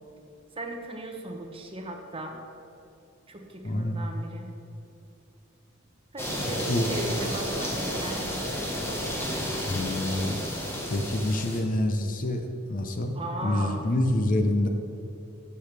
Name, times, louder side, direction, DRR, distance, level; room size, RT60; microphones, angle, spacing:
voice 1, 0.6-2.4 3.3-4.5 6.1-8.4 13.2-13.9 14.1-14.2, right 1 dB, 25° right, 3 dB, 0.9 m, -37 dB
voice 2, 3.6-4.1 6.5-6.9 9.6-10.5 10.9-12.4 12.7-14.7, left 1 dB, 40° left, 5 dB, 0.6 m, -27 dB
sound 1, 6.2-11.6, equal, 10° left, 1.2 m, -31 dB
12.0 x 7.1 x 3.4 m, 2.7 s
head